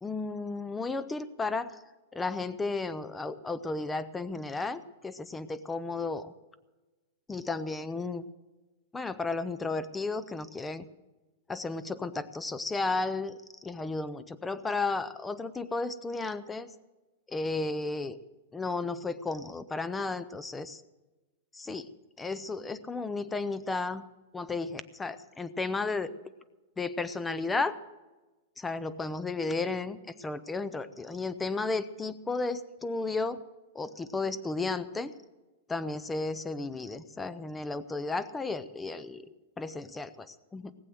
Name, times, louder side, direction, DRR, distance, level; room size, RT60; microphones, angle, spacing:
voice 1, 0.0-1.8 2.1-6.3 7.3-8.2 8.9-10.9 11.5-16.7 17.3-18.2 18.5-20.8 21.5-21.9 22.2-24.0 24.3-26.1 26.8-27.8 28.6-33.4 33.7-35.1 35.7-39.2 39.6-40.7, left 3 dB, 10° left, 15 dB, 0.5 m, -33 dB
18.5 x 7.7 x 7.7 m, 1.1 s
supercardioid pair, 170°, 0 cm